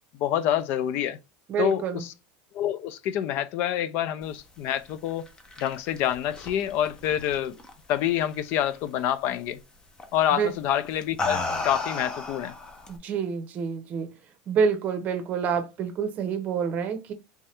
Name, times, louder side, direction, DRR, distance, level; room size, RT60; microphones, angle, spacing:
voice 1, 0.2-1.2 1.6-2.1 2.5-5.2 5.6-7.6 7.9-9.6 10.1-12.5, left 11 dB, 55° left, 0.4 m, -27 dB
voice 2, 1.5-2.0 10.3-10.5 12.9-14.1 14.5-17.1, right 6 dB, 35° right, 0.8 m, -27 dB
sound 1, 5.1-8.0 8.3-8.8 10.0-10.2 10.8-13.0, left 3 dB, 20° left, 0.7 m, -33 dB
3.5 x 2.6 x 3.3 m
supercardioid pair, 140°, 4 cm